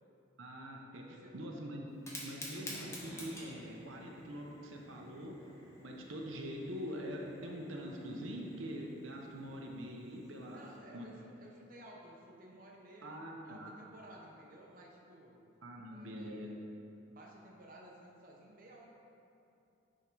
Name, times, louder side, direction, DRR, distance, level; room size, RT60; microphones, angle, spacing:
voice 1, 0.4-1.0 1.3-1.9 2.2-5.3 5.8-10.6 10.9-11.1 13.0-13.7 15.6-16.6, equal, 80° right, 0 dB, 0.9 m, -44 dB
voice 2, 1.0-1.3 10.5-15.4 15.9-16.6 17.1-18.9, right 1 dB, 45° right, -2 dB, 0.8 m, -55 dB
Fire, 1.9-10.8, left 1 dB, 15° left, 1.0 m, -51 dB
10.0 x 3.7 x 4.6 m, 2.7 s
head